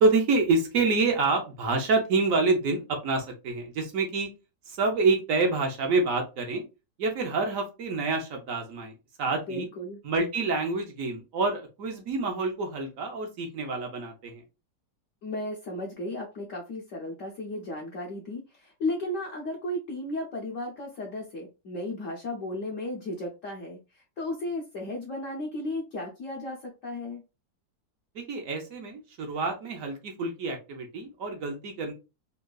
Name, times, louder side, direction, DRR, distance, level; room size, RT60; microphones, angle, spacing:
voice 1, 0.0-4.3 4.7-6.6 7.0-8.9 9.2-9.7 10.0-14.4 28.1-31.9, right 3 dB, 65° right, 3 dB, 0.9 m, -27 dB
voice 2, 9.5-10.0 15.2-27.2, left 1 dB, 70° left, -1 dB, 0.8 m, -34 dB
3.6 x 2.3 x 2.2 m, 0.29 s
omnidirectional pair, 2.0 m